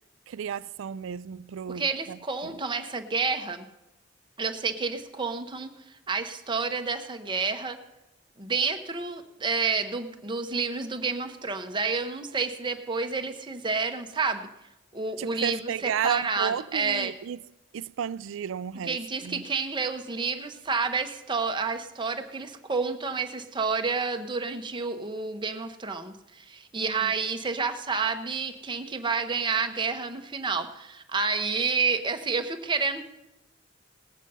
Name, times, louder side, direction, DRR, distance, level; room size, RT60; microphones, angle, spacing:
voice 1, 0.3-2.6 15.2-17.4 17.7-19.4 26.8-27.1, right 8 dB, 75° right, 0.4 m, -33 dB
voice 2, 1.7-3.7 4.4-7.8 8.4-14.5 14.9-17.1 18.9-33.0, right 4 dB, 25° right, 0.9 m, -29 dB
19.0 x 8.2 x 5.5 m
head